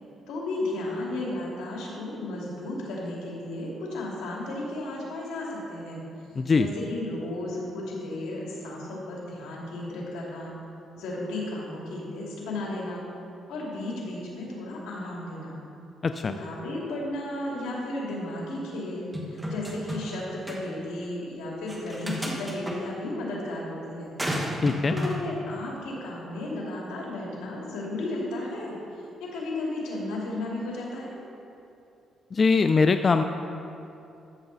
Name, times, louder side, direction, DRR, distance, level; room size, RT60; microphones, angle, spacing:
voice 1, 0.3-6.0 6.6-10.5 11.0-13.0 13.5-15.6 16.2-24.1 24.9-28.7 29.2-31.1, left 1 dB, 90° left, -4 dB, 2.5 m, -34 dB
voice 2, 6.4-6.7 16.0-16.3 24.6-24.9 32.3-33.2, left 4 dB, 35° left, 8 dB, 0.4 m, -22 dB
sound 1, 19.1-20.2 20.5-20.6 21.7-22.8 24.2-25.2, equal, 10° right, 1.6 m, -32 dB
13.5 x 7.2 x 4.0 m, 2.7 s
cardioid pair, 90°, 0 cm